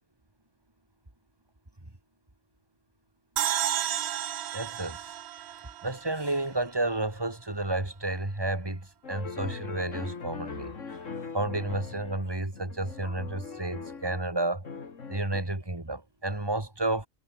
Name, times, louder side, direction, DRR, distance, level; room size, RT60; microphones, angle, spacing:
sound 1, 3.4-6.7, right 11 dB, 60° right, 0.8 m, -32 dB
voice 1, 4.5-5.0 5.8-8.8 9.1-10.7 11.3-14.7 15.1-17.1, right 2 dB, 15° right, 2.9 m, -31 dB
sound 2, 9.0-14.3 14.6-15.4, left 5 dB, 65° left, 2.4 m, -40 dB
omnidirectional pair, 1.4 m